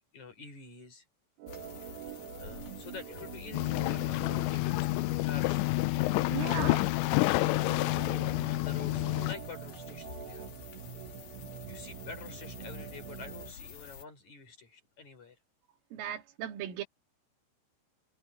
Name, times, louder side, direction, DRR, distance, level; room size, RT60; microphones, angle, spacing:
voice 1, 0.1-1.1 1.8-1.9 2.4-5.6 5.9-6.6 8.4-10.5 11.7-15.4, left 5 dB, 35° left, 7.2 m, -48 dB
Organ, 1.4-13.5, right 11 dB, 65° right, 3.2 m, -46 dB
sound 1, 1.5-14.0, left 7 dB, 55° left, 3.6 m, -49 dB
sound 2, 3.5-9.4, left 21 dB, 80° left, 2.7 m, -29 dB
voice 2, 6.3-6.9 15.9-16.8, right 11 dB, 90° right, 4.8 m, -37 dB
omnidirectional pair, 5.6 m